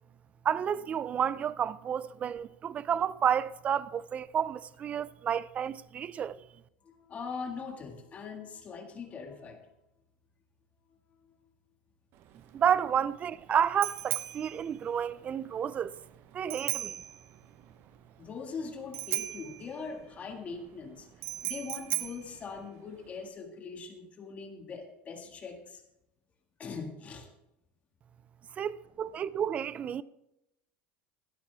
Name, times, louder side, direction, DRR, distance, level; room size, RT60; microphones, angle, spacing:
voice 1, 0.4-6.5 12.5-16.0 16.3-17.0 28.6-30.0, right 8 dB, 25° right, 0.4 m, -30 dB
voice 2, 6.8-9.7 11.2-11.3 18.2-25.8 26.6-27.3, left 5 dB, 25° left, 1.8 m, -41 dB
Bicycle bell, 12.1-23.3, right 15 dB, 45° right, 0.9 m, -39 dB
16.0 x 11.5 x 3.4 m
supercardioid pair, 145°, 5 cm